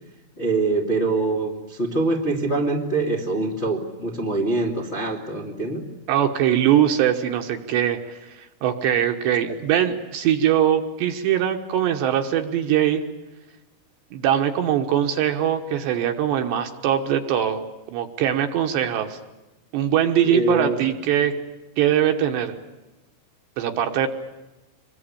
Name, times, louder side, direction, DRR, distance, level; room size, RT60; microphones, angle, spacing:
voice 1, 0.4-5.8 20.2-20.8, right 3 dB, 35° left, 0 dB, 1.0 m, -24 dB
voice 2, 6.1-13.0 14.1-17.6 17.9-19.2 19.7-21.4 21.8-22.5 23.6-24.1, right 10 dB, 70° right, 5 dB, 3.1 m, -22 dB
26.0 x 22.5 x 8.7 m, 1.1 s
omnidirectional pair, 6.0 m